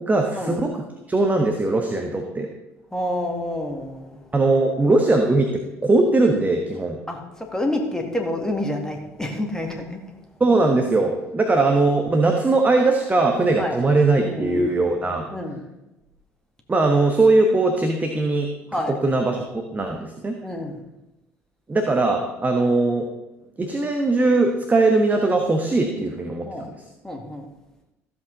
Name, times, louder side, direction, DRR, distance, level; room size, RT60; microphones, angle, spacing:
voice 1, 0.0-2.5 4.3-7.0 10.4-15.3 16.7-18.5 18.9-20.3 21.7-23.1 23.6-26.7, right 2 dB, 20° right, 3 dB, 1.2 m, -20 dB
voice 2, 2.9-4.2 7.1-10.0 13.6-13.8 14.2-14.6 15.3-15.6 18.7-18.9 20.4-20.8 26.5-26.7 27.0-27.5, left 1 dB, 10° left, 2 dB, 2.1 m, -28 dB
14.0 x 7.7 x 4.0 m, 0.97 s
figure-of-eight pair, 55°, 8 cm